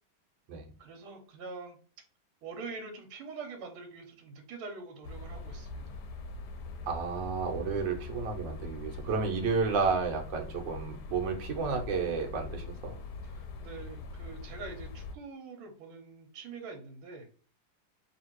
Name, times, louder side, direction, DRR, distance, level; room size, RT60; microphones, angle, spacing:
voice 1, 0.8-1.8 2.4-6.0 13.2-17.3, right 4 dB, 80° right, 3 dB, 1.7 m, -44 dB
sound 1, 5.0-15.2, left 3 dB, 70° left, 1.0 m, -42 dB
voice 2, 6.9-13.0, right 5 dB, 65° right, 2 dB, 1.5 m, -31 dB
3.4 x 2.8 x 4.5 m, 0.39 s
omnidirectional pair, 2.3 m